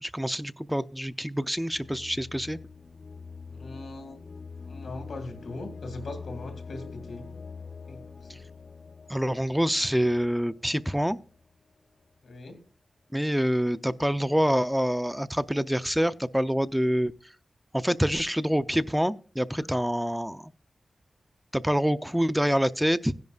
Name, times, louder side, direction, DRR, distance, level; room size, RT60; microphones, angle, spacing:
voice 1, 0.0-2.6 8.3-8.4 9.1-11.2 13.1-17.3 17.7-20.5 21.5-23.1, equal, 5° right, 0.4 m, -26 dB
sound 1, 1.7-11.5, left 5 dB, 50° left, 0.5 m, -44 dB
voice 2, 3.5-4.2 4.6-7.3 7.9-8.4 12.2-12.6 19.5-19.7, left 2 dB, 85° left, 2.3 m, -40 dB
16.0 x 10.5 x 2.4 m
wide cardioid pair, 70°, 0 cm